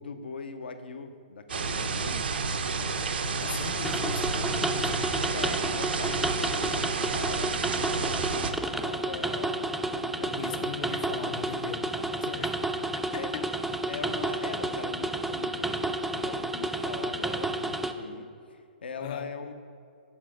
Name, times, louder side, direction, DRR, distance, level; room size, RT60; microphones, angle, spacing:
voice 1, 0.0-2.3 5.3-10.8 12.2-12.4 13.2-13.3 13.7-19.5, left 5 dB, 80° left, 8 dB, 0.7 m, -40 dB
sound 1, 1.5-8.5, right 4 dB, 80° right, 0.7 m, -30 dB
voice 2, 3.4-5.1 10.3-12.5 13.1-13.5 19.0-19.3, left 7 dB, 45° left, 9 dB, 0.6 m, -39 dB
sound 2, 3.8-17.9, right 2 dB, 5° right, 0.3 m, -31 dB
7.2 x 5.7 x 4.9 m, 2.3 s
hypercardioid pair, 135°, 5 cm